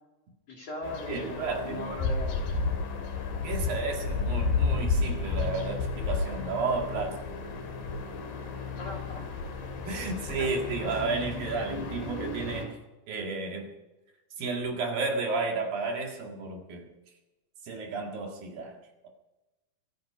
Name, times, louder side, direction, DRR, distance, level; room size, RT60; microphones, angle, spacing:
voice 1, 0.5-2.3 8.8-9.2 10.4-10.5, left 1 dB, 45° left, -1 dB, 2.8 m, -39 dB
sound 1, 0.8-12.7, left 4 dB, 70° left, 4.4 m, -32 dB
voice 2, 1.1-1.9 3.4-7.2 9.8-12.8 13.1-13.7 14.4-16.9 17.6-18.8, right 3 dB, 60° right, 2 dB, 3.4 m, -32 dB
25.5 x 9.5 x 5.0 m, 1.1 s
omnidirectional pair, 4.9 m